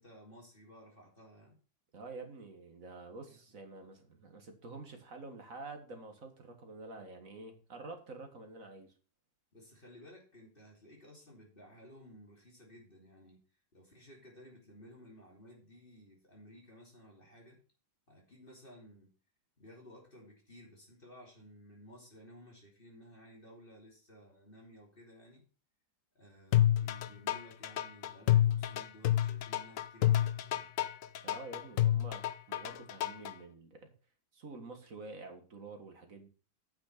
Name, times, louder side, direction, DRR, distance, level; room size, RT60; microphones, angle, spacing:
voice 1, 0.0-1.5 3.3-3.4 9.5-13.4 13.7-17.6 18.1-19.1 19.6-25.4 26.1-30.7, equal, 30° left, 3.0 m, -56 dB
voice 2, 1.9-8.9 31.2-33.9 34.3-36.3, right 3 dB, 45° right, 2.0 m, -48 dB
sound 1, 26.5-33.3, left 12 dB, 70° left, 0.8 m, -29 dB
9.2 x 5.8 x 5.8 m
omnidirectional pair, 2.0 m